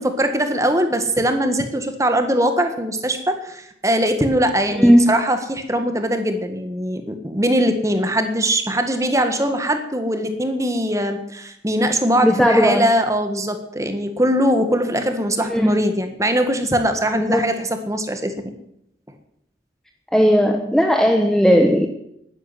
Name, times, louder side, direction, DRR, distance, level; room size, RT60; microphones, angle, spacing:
voice 1, 0.0-18.6, equal, 15° right, 7 dB, 1.6 m, -21 dB
voice 2, 4.8-5.1 12.2-12.9 15.5-15.8 17.1-17.5 20.1-21.9, equal, 5° left, 4 dB, 1.0 m, -16 dB
12.0 x 10.5 x 9.8 m, 0.77 s
head